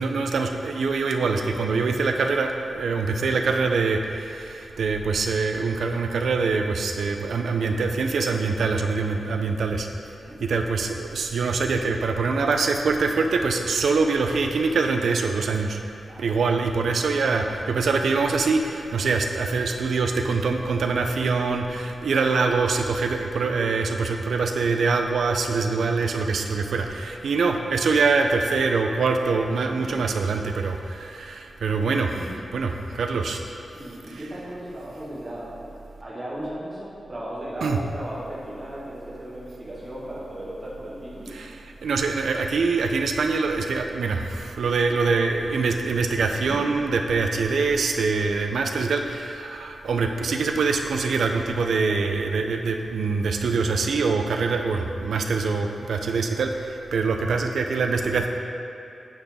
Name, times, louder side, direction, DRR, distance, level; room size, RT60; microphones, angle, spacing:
voice 1, 0.0-9.9 10.4-15.8 16.2-32.2 32.5-33.4 37.6-37.8 41.3-41.5 41.8-58.3, right 4 dB, 85° right, 4 dB, 0.4 m, -24 dB
voice 2, 16.0-16.4 29.9-30.2 32.2-32.3 33.7-35.7 36.0-41.3 46.5-46.6, right 1 dB, 25° right, -7 dB, 1.5 m, -36 dB
8.8 x 4.1 x 3.5 m, 2.7 s
wide cardioid pair, 145°, 0 cm